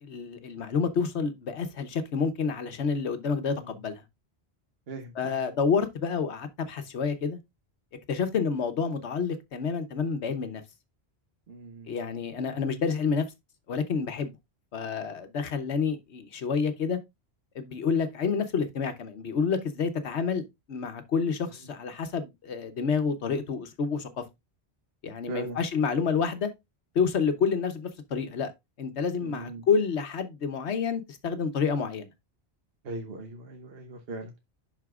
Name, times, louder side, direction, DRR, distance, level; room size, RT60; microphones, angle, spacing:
voice 1, 0.0-4.0 5.2-7.4 8.1-10.6 11.9-13.2 13.7-14.3 14.7-17.0 17.5-24.1 25.0-26.5 26.9-28.5 28.8-32.1, left 5 dB, 85° left, 1.2 m, -29 dB
voice 2, 3.3-3.7 4.9-5.3 11.5-12.0 25.3-25.6 29.2-29.6 32.8-34.4, right 3 dB, 65° right, 1.2 m, -39 dB
11.0 x 4.3 x 2.4 m
omnidirectional pair, 1.1 m